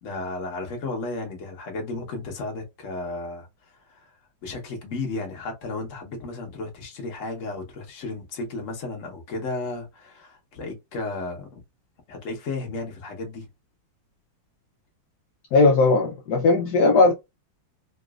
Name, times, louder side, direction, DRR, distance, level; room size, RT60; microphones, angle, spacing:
voice 1, 0.0-3.5 3.9-4.1 4.4-11.6 12.1-13.5, left 3 dB, 50° left, 1.2 m, -33 dB
voice 2, 15.5-17.1, left 3 dB, 70° left, 1.1 m, -18 dB
4.0 x 2.4 x 2.3 m
omnidirectional pair, 2.1 m